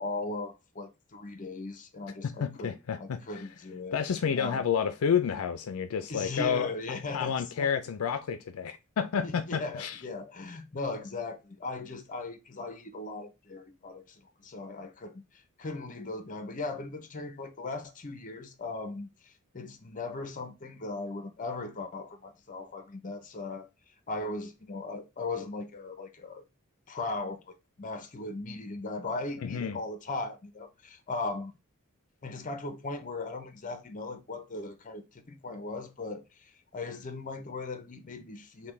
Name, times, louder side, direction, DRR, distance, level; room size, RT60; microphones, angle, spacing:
voice 1, 0.0-2.7 3.0-4.0 4.4-4.6 6.1-7.7 9.2-15.2 15.6-23.7 24.1-26.4 26.9-31.5 32.2-38.7, left 3 dB, 40° left, 0.7 m, -38 dB
voice 2, 2.4-3.5 3.9-6.7 7.1-10.0 29.4-29.8, left 7 dB, 75° left, 0.4 m, -30 dB
5.6 x 2.2 x 3.1 m
head